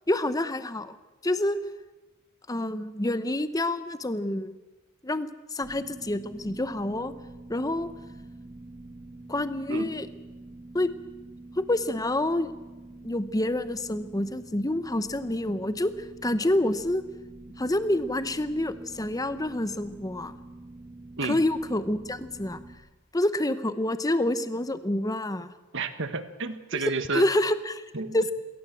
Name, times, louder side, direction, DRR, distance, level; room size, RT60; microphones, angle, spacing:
voice 1, 0.1-0.9 1.2-1.6 2.5-4.5 5.0-7.1 7.5-7.9 9.3-10.1 10.7-10.9 11.6-12.5 13.0-15.9 16.2-17.0 17.6-20.4 21.2-22.6 23.1-25.5 26.7-26.8 27.1-27.8 28.1-28.3, left 1 dB, 15° left, 12 dB, 0.9 m, -27 dB
sound 1, 5.6-22.8, right 2 dB, 20° right, 1.8 m, -46 dB
voice 2, 25.7-27.3 27.9-28.3, right 4 dB, 55° right, 10 dB, 1.5 m, -31 dB
21.0 x 17.5 x 7.5 m, 1.1 s
head